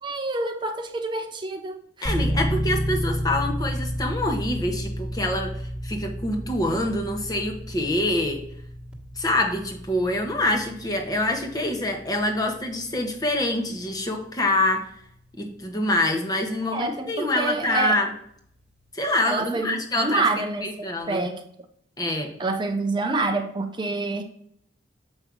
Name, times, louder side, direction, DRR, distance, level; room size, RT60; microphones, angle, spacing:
voice 1, 0.0-2.2 16.7-17.9 19.2-20.7 21.1-21.4 22.4-24.2, right 3 dB, 25° right, 0.5 m, -27 dB
voice 2, 2.0-5.5 5.8-8.4 9.2-14.9 15.4-18.1 18.9-20.2 20.6-21.3 22.0-22.3, left 1 dB, 20° left, 1.0 m, -25 dB
sound 1, 2.0-18.8, equal, 5° right, 1.5 m, -33 dB
7.1 x 5.4 x 3.6 m
head